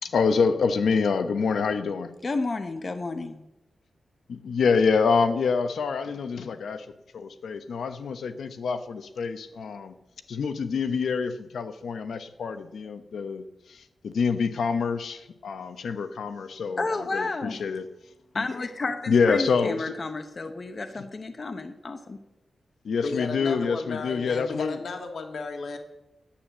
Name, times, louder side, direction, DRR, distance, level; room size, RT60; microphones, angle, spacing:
voice 1, 0.0-2.1 4.3-6.9 7.1-9.9 10.3-17.9 18.3-18.5 19.1-19.9 22.8-24.8, left 5 dB, 85° left, 10 dB, 0.9 m, -26 dB
voice 2, 2.2-3.4 16.8-17.6 18.3-22.2, left 3 dB, 35° left, 8 dB, 0.9 m, -31 dB
voice 3, 23.0-25.8, left 4 dB, 65° left, 4 dB, 1.6 m, -34 dB
10.0 x 8.5 x 7.4 m, 0.93 s
wide cardioid pair, 150°, 0 cm